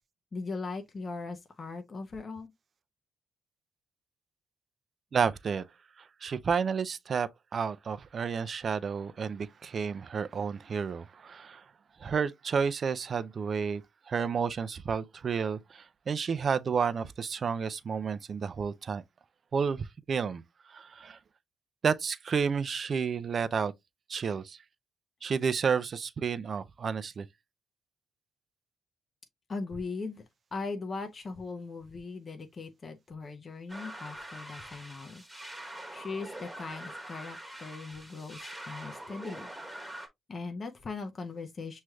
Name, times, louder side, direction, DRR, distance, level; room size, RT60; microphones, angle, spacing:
voice 1, 0.3-2.5 29.5-30.2 30.5-35.2 35.9-39.5 40.3-41.8, left 4 dB, 35° left, 0.7 m, -39 dB
voice 2, 5.1-5.6 6.0-11.6 12.0-13.8 14.1-19.0 19.5-20.4 20.7-21.2 21.8-23.7 24.1-24.6 25.2-27.3, right 6 dB, 45° right, 0.4 m, -31 dB
sound 1, 33.7-40.1, right 1 dB, 5° right, 1.3 m, -44 dB
6.1 x 3.2 x 2.3 m
cardioid pair, 90°, 0 cm